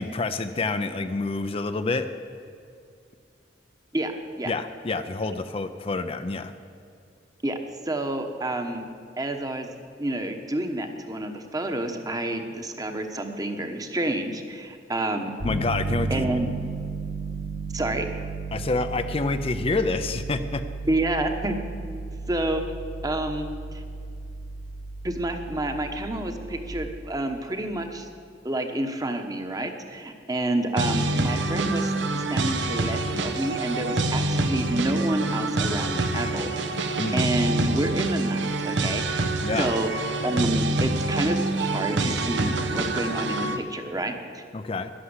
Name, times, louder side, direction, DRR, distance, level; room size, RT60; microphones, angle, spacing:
voice 1, 0.0-2.1 4.5-6.5 15.4-16.3 18.5-20.6 37.0-37.2 39.4-39.7 44.5-44.9, left 3 dB, 30° left, 9 dB, 0.5 m, -27 dB
voice 2, 3.9-4.5 7.4-7.6 7.8-8.9 9.2-9.7 10.0-15.3 16.1-16.5 17.7-18.1 20.9-21.6 22.3-22.6 23.0-23.8 25.0-28.1 28.4-39.9 40.2-44.4, right 1 dB, 20° right, 6 dB, 1.1 m, -29 dB
Piano, 15.4-26.7, right 3 dB, 65° right, 4.2 m, -34 dB
sound 1, 30.8-43.6, right 2 dB, 85° right, 1.0 m, -26 dB
11.5 x 11.0 x 8.0 m, 2.4 s
head